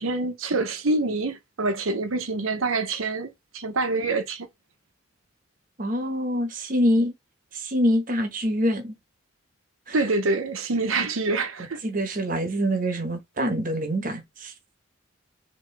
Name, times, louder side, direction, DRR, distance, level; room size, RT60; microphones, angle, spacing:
voice 1, 0.0-4.5 9.9-11.8, right 3 dB, 90° right, 0.8 m, -26 dB
voice 2, 5.8-7.1 7.5-9.0 9.9-10.0 11.8-14.5, equal, 40° right, 0.9 m, -25 dB
4.4 x 2.8 x 3.3 m
head